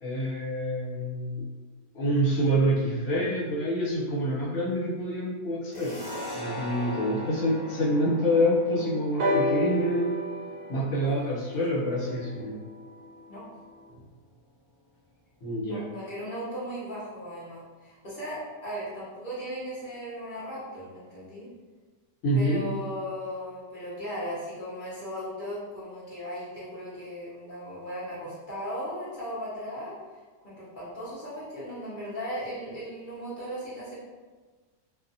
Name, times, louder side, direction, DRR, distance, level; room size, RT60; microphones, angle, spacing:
voice 1, 0.0-1.4 1.9-5.9 6.3-10.1 10.7-12.6 15.4-15.8 22.2-22.6, equal, 65° left, -7 dB, 1.4 m, -27 dB
sound 1, 5.7-12.9, left 1 dB, 20° left, 1.0 m, -41 dB
sound 2, 9.2-13.0 14.0-14.1, left 1 dB, 80° right, 0.6 m, -31 dB
voice 2, 11.0-11.3 11.7-11.9 13.3-13.4 15.7-21.5 22.3-29.9 30.4-34.0, equal, 45° left, -9 dB, 0.6 m, -37 dB
2.7 x 2.3 x 2.6 m, 1.4 s
omnidirectional pair, 1.8 m